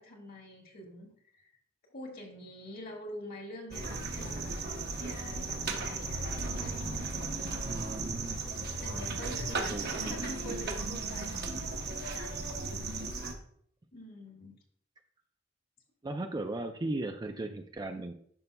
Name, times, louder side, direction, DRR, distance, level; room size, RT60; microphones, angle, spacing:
voice 1, 0.0-1.5 1.9-4.5 4.9-7.3 8.8-13.0 13.9-14.5, equal, 50° left, 1 dB, 1.7 m, -46 dB
sound 1, 3.7-13.3, right 3 dB, 55° right, 0.9 m, -36 dB
voice 2, 7.6-8.4 9.7-10.3 16.0-18.1, right 2 dB, 20° right, 6 dB, 0.4 m, -37 dB
11.0 x 5.6 x 2.2 m, 0.64 s
head